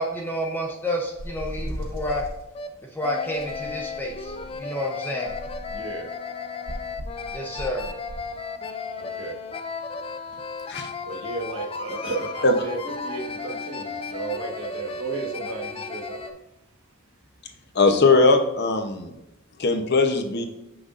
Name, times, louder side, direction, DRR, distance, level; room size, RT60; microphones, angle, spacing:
voice 1, 0.0-2.2 2.9-4.3 4.6-5.3 7.3-7.9, equal, 10° left, 0 dB, 0.7 m, -29 dB
sound 1, 1.2-2.4 3.3-4.6 5.2-5.9 6.7-8.3, equal, 45° right, 0.8 m, -37 dB
sound 2, 1.7-1.8 2.0-2.2 2.5-2.7 3.0-16.3, left 4 dB, 25° left, 0.4 m, -35 dB
voice 2, 5.7-6.1 9.0-9.3 11.0-16.2, right 3 dB, 65° right, 0 dB, 1.3 m, -33 dB
voice 3, 17.7-19.1 19.6-20.5, left 3 dB, 50° left, 6 dB, 0.7 m, -19 dB
6.4 x 6.0 x 2.5 m, 0.92 s
head